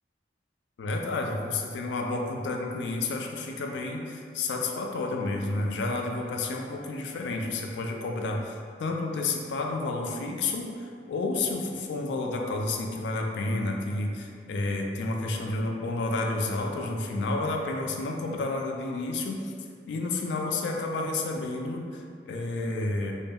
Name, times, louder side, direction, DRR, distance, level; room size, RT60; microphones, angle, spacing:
voice 1, 0.8-19.5 19.9-23.2, left 2 dB, 75° left, 1 dB, 0.3 m, -30 dB
2.2 x 2.0 x 3.4 m, 2.3 s
head